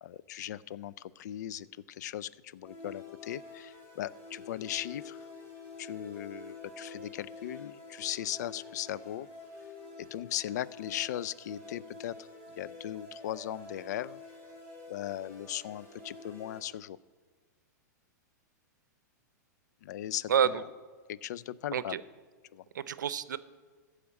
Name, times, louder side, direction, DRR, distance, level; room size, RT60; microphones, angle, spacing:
voice 1, 0.0-5.3 5.8-9.3 10.0-12.3 12.6-14.2 14.9-17.0 19.8-20.6 21.1-22.0 22.5-22.6, left 12 dB, 70° left, 19 dB, 0.4 m, -38 dB
sound 1, 2.6-16.6, left 3 dB, 25° left, 3.9 m, -48 dB
voice 2, 20.3-20.6 21.7-22.0 22.7-23.4, right 8 dB, 80° right, 16 dB, 0.6 m, -28 dB
15.0 x 5.0 x 7.5 m, 1.5 s
hypercardioid pair, 120°, 10 cm